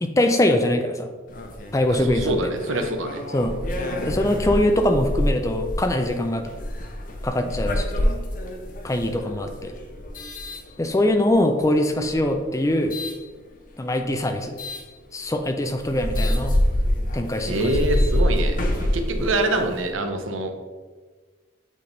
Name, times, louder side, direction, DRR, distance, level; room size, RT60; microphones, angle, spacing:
voice 1, 0.0-1.1 1.7-2.5 3.3-3.5 4.1-6.5 7.2-8.1 8.8-9.7 10.8-13.0 13.8-14.6 15.1-16.6 17.1-17.7 19.2-19.3, left 1 dB, 15° left, 6 dB, 0.4 m, -22 dB
sound 1, 1.3-11.3 12.0-13.2 14.6-14.9 15.4-15.5 15.8-19.9, left 1 dB, 45° left, 0.7 m, -26 dB
voice 2, 1.9-3.2 17.4-20.5, right 2 dB, 90° right, 6 dB, 0.8 m, -25 dB
8.4 x 3.5 x 3.9 m, 1.4 s
head